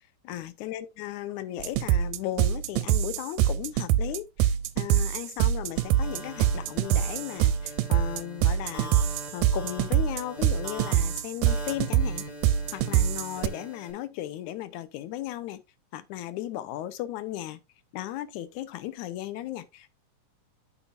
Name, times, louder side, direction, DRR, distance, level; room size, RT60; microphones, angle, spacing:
voice 1, 0.2-9.0 9.3-12.3 12.7-15.6 15.9-17.6 17.9-20.0, left 13 dB, 80° left, 2.0 m, -36 dB
sound 1, 1.6-13.5, right 11 dB, 85° right, 2.1 m, -24 dB
sound 2, 5.7-13.9, right 1 dB, 15° left, 2.4 m, -42 dB
8.6 x 7.0 x 2.5 m
omnidirectional pair, 3.7 m